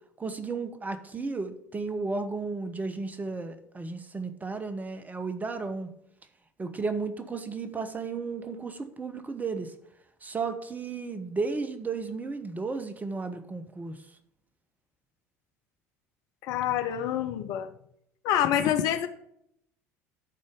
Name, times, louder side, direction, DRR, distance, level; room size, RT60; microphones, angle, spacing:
voice 1, 0.2-5.9 6.6-9.7 10.2-14.0, right 4 dB, 20° right, 9 dB, 1.0 m, -34 dB
voice 2, 16.4-17.7 18.2-19.1, left 10 dB, 55° left, 10 dB, 0.7 m, -26 dB
11.5 x 4.3 x 5.1 m, 0.74 s
figure-of-eight pair, 65°, 8 cm